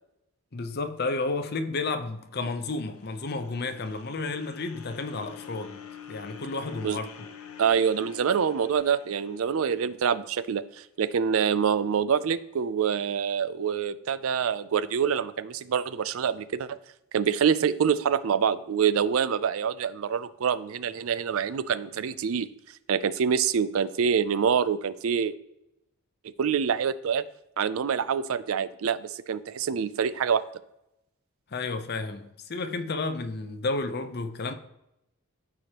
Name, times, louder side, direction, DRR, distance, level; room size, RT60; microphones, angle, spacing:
voice 1, 0.5-5.8 6.1-7.3 31.5-34.5, left 3 dB, 45° left, 0.7 m, -32 dB
sound 1, 2.3-10.5, left 7 dB, 80° left, 0.8 m, -47 dB
voice 2, 7.6-16.8 17.1-22.5 22.9-25.3 26.4-27.2 27.6-30.4, right 7 dB, 70° right, 0.4 m, -26 dB
13.0 x 4.9 x 2.9 m
head